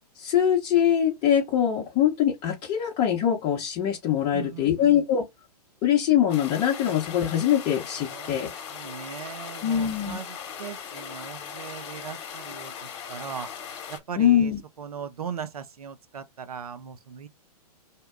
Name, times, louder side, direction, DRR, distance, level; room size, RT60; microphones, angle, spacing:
voice 1, 0.2-5.2 5.8-8.5 9.6-10.2 14.2-14.6, left 10 dB, 30° left, 0.8 m, -23 dB
voice 2, 4.3-4.9 8.0-13.5 13.9-14.5 14.8-17.3, right 7 dB, 70° right, 0.6 m, -39 dB
sound 1, 6.3-14.0, left 8 dB, 50° left, 1.1 m, -39 dB
2.8 x 2.2 x 3.4 m
figure-of-eight pair, 110°, 20 cm